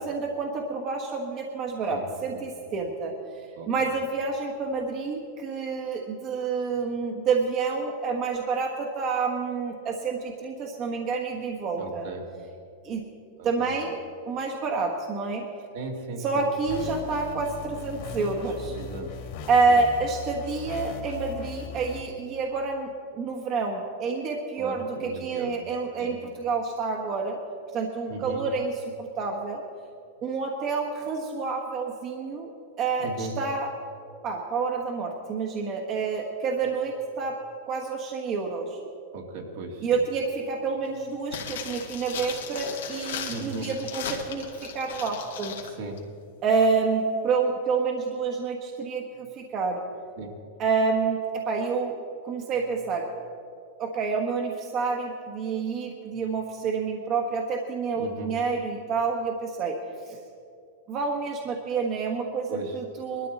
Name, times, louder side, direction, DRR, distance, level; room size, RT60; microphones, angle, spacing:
voice 1, 0.0-3.1 3.7-12.1 12.8-13.0 13.4-14.0 14.3-15.4 16.2-18.8 19.5-27.4 27.7-29.6 30.2-32.5 32.8-33.7 34.2-37.4 37.7-38.8 39.8-45.6 46.4-49.8 50.6-51.9 52.2-53.0 53.8-59.8 60.1-60.2 60.9-63.3, right 4 dB, 35° right, 1 dB, 1.3 m, -28 dB
voice 2, 3.6-3.9 11.8-12.2 13.4-13.7 15.7-16.4 18.3-18.4 18.8-19.1 19.7-19.8 24.6-25.5 26.0-26.2 28.1-28.4 33.0-33.3 39.1-40.0 43.3-43.7 45.7-46.0 50.2-50.3 57.9-58.3 62.5-62.8, right 3 dB, 70° right, 1 dB, 2.4 m, -37 dB
sound 1, 16.7-22.0, left 6 dB, 55° left, 2.1 m, -38 dB
sound 2, 41.3-45.7 46.0-46.1, left 7 dB, 90° left, 2.0 m, -37 dB
20.0 x 13.0 x 4.2 m, 2.6 s
supercardioid pair, 140°, 0 cm